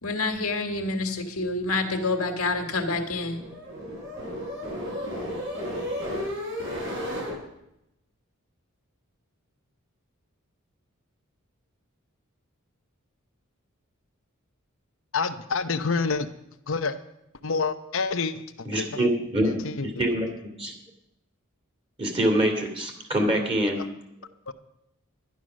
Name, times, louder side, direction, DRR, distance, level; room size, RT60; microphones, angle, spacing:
voice 1, 0.0-3.4, left 3 dB, 90° left, 5 dB, 1.7 m, -27 dB
sound 1, 2.6-7.3, equal, 60° right, 6.3 m, -33 dB
voice 2, 15.1-16.3 16.7-17.0 17.4-19.1 19.4-20.1 24.5-24.6, left 4 dB, 65° left, 8 dB, 0.8 m, -28 dB
voice 3, 18.7-20.3 20.6-20.7 22.0-23.8, right 1 dB, 25° right, 1 dB, 2.6 m, -25 dB
11.5 x 10.5 x 6.3 m, 0.83 s
head